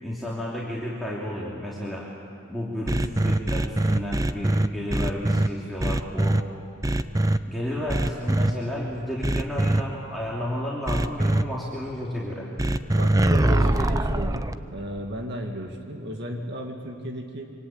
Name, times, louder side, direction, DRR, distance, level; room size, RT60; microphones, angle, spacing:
voice 1, 0.0-2.1 2.5-6.4 7.4-12.5 13.4-13.9, left 1 dB, ahead, -6 dB, 3.0 m, -32 dB
sound 1, 2.9-5.5 5.8-6.4 6.8-7.4 7.9-8.5 9.2-9.8 10.9-11.4 12.6-14.5, right 1 dB, 15° right, 0.6 m, -22 dB
voice 2, 13.0-17.5, equal, 55° right, 2 dB, 2.2 m, -34 dB
26.0 x 24.5 x 8.9 m, 2.7 s
head